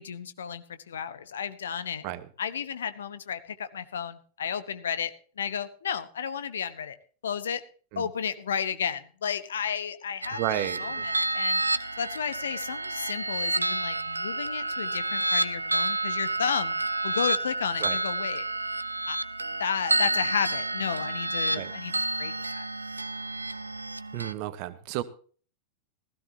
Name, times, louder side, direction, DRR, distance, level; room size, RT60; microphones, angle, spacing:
voice 1, 0.0-2.0 2.4-5.1 5.4-7.0 7.2-7.6 8.0-11.6 12.0-16.7 17.0-18.5 19.1-19.2 19.6-22.7, left 7 dB, 65° left, 13 dB, 1.1 m, -32 dB
sound 1, 10.2-24.3, right 2 dB, 80° right, 0.6 m, -29 dB
voice 2, 10.3-11.1 17.8-18.0 21.5-21.7 24.1-25.0, right 14 dB, 45° right, 14 dB, 1.2 m, -32 dB
16.5 x 15.0 x 2.8 m, 0.41 s
figure-of-eight pair, 90°, 0 cm